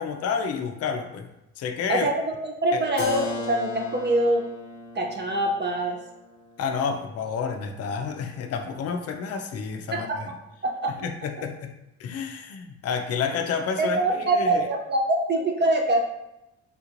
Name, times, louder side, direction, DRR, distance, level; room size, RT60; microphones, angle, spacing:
voice 1, 0.0-1.3 1.6-2.1 2.7-2.8 6.6-10.3 11.0-11.7 12.0-14.7, left 6 dB, 55° left, 5 dB, 0.5 m, -30 dB
voice 2, 2.4-4.4 4.9-6.0 9.9-10.0 10.6-10.9 13.8-16.0, right 2 dB, 35° right, 1 dB, 0.5 m, -24 dB
Keyboard (musical), 3.0-8.6, left 2 dB, 85° left, 0.7 m, -38 dB
3.4 x 3.0 x 2.5 m, 0.89 s
cardioid pair, 90°, 30 cm